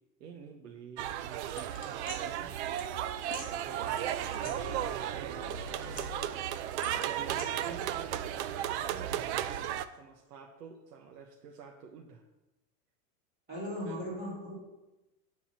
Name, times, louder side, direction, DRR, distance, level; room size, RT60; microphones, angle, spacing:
voice 1, 0.2-2.5 5.1-6.2 6.9-9.3 9.9-12.2 13.9-14.0, right 6 dB, 90° right, 0 dB, 1.3 m, -49 dB
sound 1, 1.0-9.9, right 11 dB, 45° right, 0.5 m, -34 dB
sound 2, 1.6-2.2 2.8-2.9 3.2-3.5 4.0-5.1 5.3-6.3 6.8-7.4, left 5 dB, 20° left, 1.8 m, -45 dB
voice 2, 3.6-4.8 13.5-14.5, equal, 20° right, -7 dB, 3.3 m, -40 dB
10.0 x 4.1 x 7.4 m, 1.0 s
supercardioid pair, 160°, 47 cm